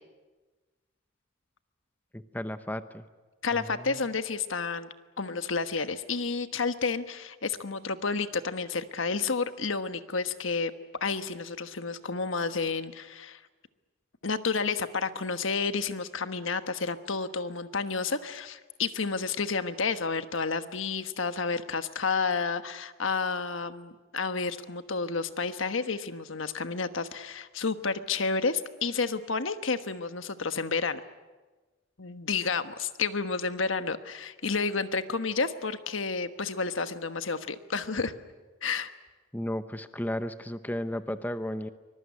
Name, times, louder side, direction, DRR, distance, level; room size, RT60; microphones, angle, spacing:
voice 1, 2.1-3.0 3.5-4.0 39.3-41.7, left 1 dB, 10° left, 10 dB, 0.8 m, -34 dB
voice 2, 3.4-4.9 5.2-10.7 11.0-13.4 14.2-31.0 32.0-38.1 38.6-38.9, left 4 dB, 80° left, 10 dB, 1.3 m, -30 dB
24.5 x 21.5 x 9.6 m, 1.2 s
head